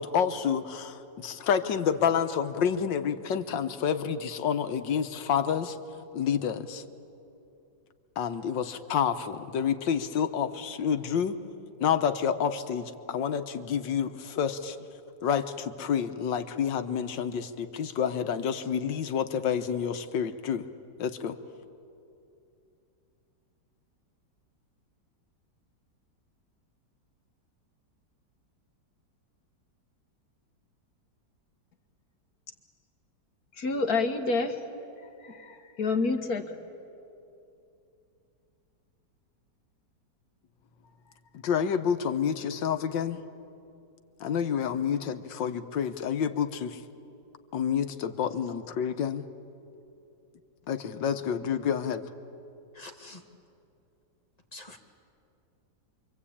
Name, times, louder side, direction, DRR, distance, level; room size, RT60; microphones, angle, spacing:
voice 1, 0.0-5.8 6.1-6.8 8.2-11.4 11.8-14.8 15.2-20.6 21.0-21.4 41.4-43.2 44.2-46.8 47.5-49.3 50.7-52.0, left 7 dB, 90° left, 1.7 m, -29 dB
voice 2, 33.5-34.6 35.2-36.5, left 3 dB, 55° left, 1.8 m, -28 dB
voice 3, 52.8-53.2 54.5-54.8, left 2 dB, 20° left, 1.8 m, -45 dB
27.5 x 24.0 x 8.7 m
omnidirectional pair, 2.0 m